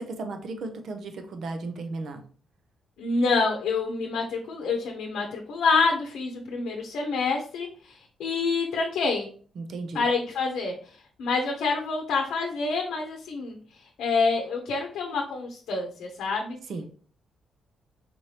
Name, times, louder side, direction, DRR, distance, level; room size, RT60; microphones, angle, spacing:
voice 1, 0.0-2.3 9.6-10.1 16.7-16.9, right 3 dB, 60° right, 6 dB, 0.7 m, -35 dB
voice 2, 3.0-9.3 9.9-10.8 11.2-13.6 14.0-16.6, left 4 dB, 80° left, 2 dB, 0.7 m, -27 dB
4.3 x 3.3 x 2.8 m, 0.44 s
cardioid pair, 110°, 0 cm